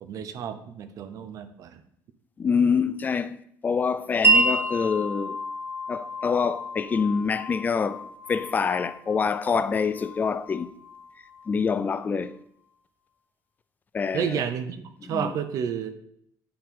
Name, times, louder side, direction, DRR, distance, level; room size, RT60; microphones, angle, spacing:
voice 1, 0.0-1.8 14.1-15.9, right 8 dB, 55° right, 0.7 m, -31 dB
voice 2, 2.4-3.4 3.6-5.4 5.9-8.0 8.3-10.7 11.5-12.4 13.9-14.4 15.0-15.3, left 5 dB, 25° left, 0.3 m, -26 dB
Wind chime, 4.2-11.9, right 2 dB, 30° right, 1.1 m, -29 dB
8.5 x 4.3 x 3.7 m
cardioid pair, 130°, 7 cm